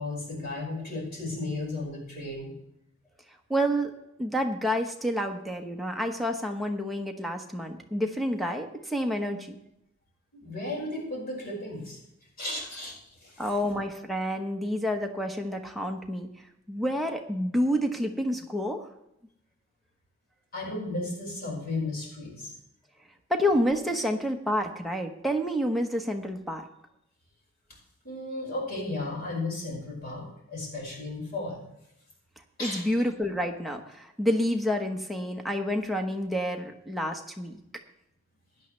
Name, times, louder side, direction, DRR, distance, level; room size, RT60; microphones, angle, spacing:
voice 1, 0.0-2.5 10.3-12.0 12.4-12.9 13.2-13.5 20.5-22.5 28.0-31.7 32.6-32.8, left 2 dB, 50° left, -3 dB, 5.3 m, -34 dB
voice 2, 3.5-3.9 4.2-9.6 13.4-16.3 16.7-18.9 23.3-26.6 32.6-37.6, equal, ahead, 4 dB, 1.1 m, -29 dB
16.5 x 10.5 x 3.3 m, 0.80 s
head